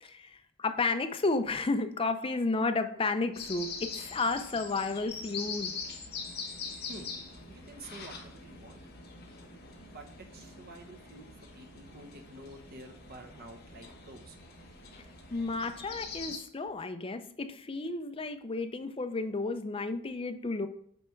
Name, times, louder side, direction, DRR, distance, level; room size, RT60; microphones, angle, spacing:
voice 1, 0.0-5.7 15.3-20.7, left 3 dB, 25° left, 8 dB, 0.4 m, -32 dB
sound 1, 3.3-16.4, left 4 dB, 50° left, 1.2 m, -43 dB
voice 2, 7.5-8.8 9.9-14.4, right 1 dB, 45° right, 4 dB, 1.0 m, -49 dB
8.2 x 3.4 x 4.5 m, 0.66 s
head